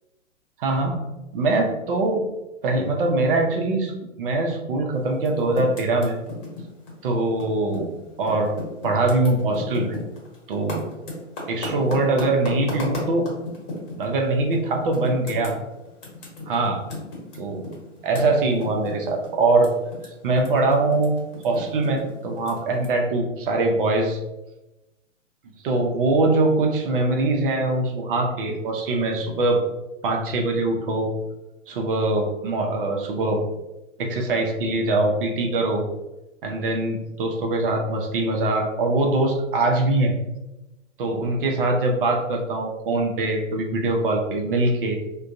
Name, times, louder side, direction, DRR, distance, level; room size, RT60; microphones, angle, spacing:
voice 1, 0.6-1.0 1.3-2.2 2.6-3.9 4.2-6.2 7.0-7.9 8.2-8.6 8.8-10.0 10.5-10.9 11.5-13.2 14.0-15.6 16.5-16.8 17.4-17.7 18.0-19.7 20.2-21.2 21.4-24.2 25.6-29.6 30.0-31.1 31.7-33.4 34.0-35.8 36.4-40.1 41.0-45.0, right 2 dB, 45° right, 2 dB, 0.6 m, -22 dB
Typing, 5.1-7.9 8.2-14.1 14.5-14.6 14.9-20.1 20.3-22.9, left 2 dB, 35° left, 1.1 m, -35 dB
3.4 x 2.2 x 2.5 m, 1.0 s
figure-of-eight pair, 120°, 38 cm